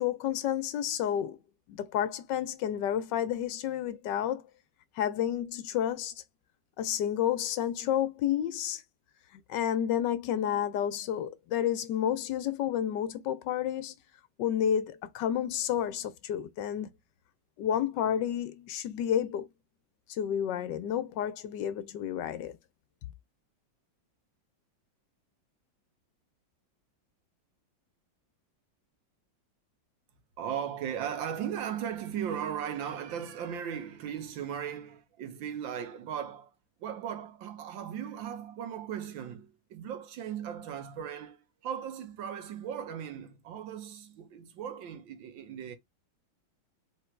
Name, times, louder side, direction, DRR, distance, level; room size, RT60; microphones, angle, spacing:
voice 1, 0.0-1.4 1.7-4.4 5.0-6.1 6.8-8.8 9.3-13.9 14.4-16.9 17.6-19.5 20.1-22.6, left 10 dB, 70° left, 1.2 m, -30 dB
voice 2, 30.4-36.5 36.8-45.8, right 9 dB, 80° right, 1.7 m, -37 dB
3.9 x 3.1 x 4.4 m
omnidirectional pair, 2.0 m